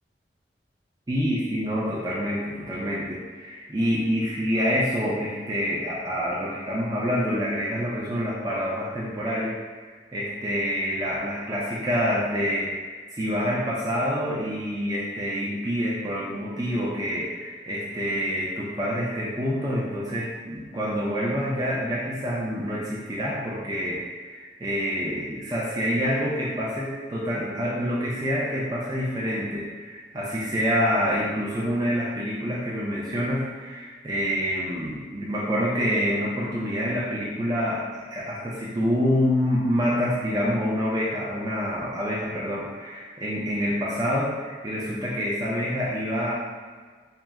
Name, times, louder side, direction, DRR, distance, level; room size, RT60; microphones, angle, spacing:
voice 1, 1.1-9.6 9.8-46.3, equal, 20° right, -6 dB, 0.5 m, -27 dB
4.2 x 2.1 x 3.5 m, 1.5 s
head